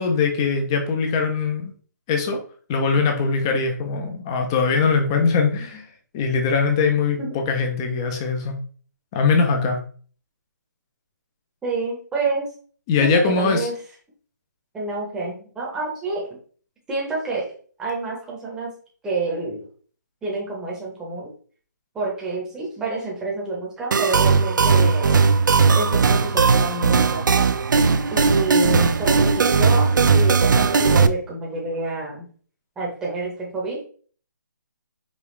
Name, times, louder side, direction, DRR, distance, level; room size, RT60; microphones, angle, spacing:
voice 1, 0.0-1.7 2.1-2.4 2.7-5.9 6.1-8.6 9.1-9.8 12.9-13.7, left 4 dB, 15° left, 4 dB, 0.4 m, -21 dB
voice 2, 11.6-12.4 13.0-13.7 14.7-16.2 16.9-17.4 17.8-18.7 19.0-19.6 20.2-21.3 21.9-25.3 25.7-27.5 28.1-32.3 32.8-33.8, right 3 dB, 5° right, -3 dB, 0.7 m, -28 dB
sound 1, 23.9-31.1, right 5 dB, 80° right, 0.4 m, -17 dB
5.0 x 2.3 x 3.1 m, 0.43 s
hypercardioid pair, 165°, 10 cm